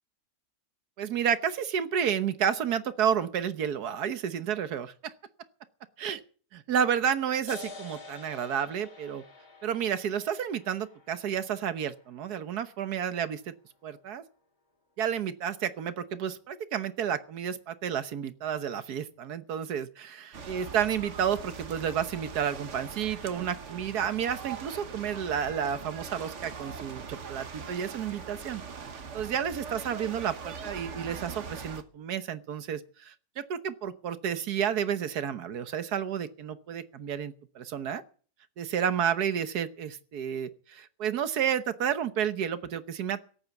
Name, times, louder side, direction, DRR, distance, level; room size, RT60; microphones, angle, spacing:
voice 1, 1.0-5.1 6.0-6.2 6.5-9.2 9.6-13.5 13.8-14.2 15.0-20.2 20.5-28.9 29.1-38.0 38.6-43.2, right 8 dB, 85° right, 12 dB, 1.6 m, -31 dB
sound 1, 7.5-14.5, left 3 dB, 60° left, 3.4 m, -49 dB
sound 2, 20.3-31.8, right 5 dB, 50° right, 1.5 m, -42 dB
17.0 x 8.8 x 8.1 m, 0.43 s
omnidirectional pair, 1.6 m